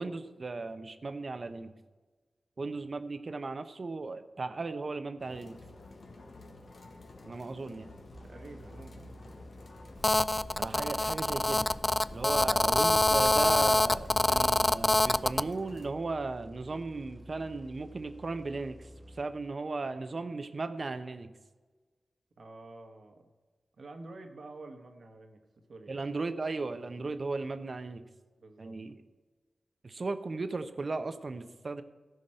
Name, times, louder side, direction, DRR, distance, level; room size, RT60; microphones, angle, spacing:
voice 1, 0.0-1.7 2.6-5.6 7.3-7.9 10.5-11.7 12.1-18.8 19.2-21.3 25.9-28.0 28.6-28.9 29.8-31.8, right 3 dB, 55° right, 10 dB, 0.9 m, -36 dB
sound 1, 5.2-15.9, left 2 dB, 70° left, 1.5 m, -51 dB
sound 2, 8.1-19.8, equal, 10° right, 1.4 m, -51 dB
voice 2, 8.2-9.3 22.4-23.3 23.7-25.4 25.7-26.1 28.4-28.8, right 2 dB, 70° right, 5 dB, 1.5 m, -49 dB
Telephone, 10.0-15.4, left 1 dB, 25° left, 0.3 m, -25 dB
14.0 x 5.3 x 7.6 m, 1.3 s
cardioid pair, 50°, 0 cm